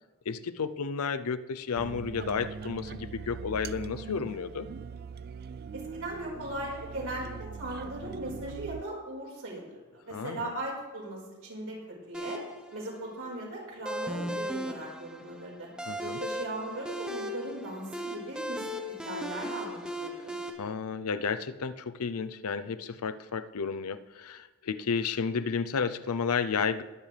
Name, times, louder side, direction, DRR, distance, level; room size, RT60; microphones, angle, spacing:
voice 1, 0.3-4.7 10.1-10.5 15.9-16.2 20.6-26.8, left 5 dB, 85° left, 13 dB, 0.6 m, -32 dB
sound 1, 1.7-8.8, right 6 dB, 45° right, 0.3 m, -41 dB
voice 2, 5.7-12.4 12.7-15.7 16.0-20.3, right 1 dB, 75° right, -3 dB, 4.9 m, -38 dB
sound 2, 12.1-20.5, equal, 5° right, 1.0 m, -37 dB
21.0 x 8.9 x 3.4 m, 1.2 s
head